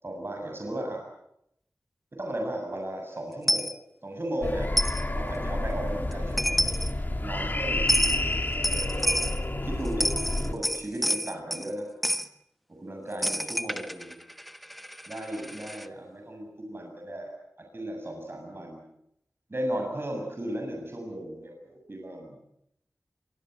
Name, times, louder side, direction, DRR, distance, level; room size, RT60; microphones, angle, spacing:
voice 1, 0.0-1.0 2.1-3.7 4.0-4.7 5.1-6.8 7.2-8.4 8.7-8.9 9.5-11.9 12.8-14.2 15.1-17.3 17.7-18.8 19.5-22.4, right 1 dB, 45° right, 2 dB, 7.3 m, -35 dB
Coin (dropping), 3.5-3.7 4.8-5.0 6.1-6.2 6.4-6.9 7.9-8.2 8.6-9.4 9.9-11.7 12.0-12.3 13.2-15.9, equal, ahead, 1.3 m, -28 dB
sound 1, 4.4-10.5, left 1 dB, 35° left, 3.4 m, -30 dB
26.0 x 24.0 x 8.0 m, 0.79 s
wide cardioid pair, 65°, 5 cm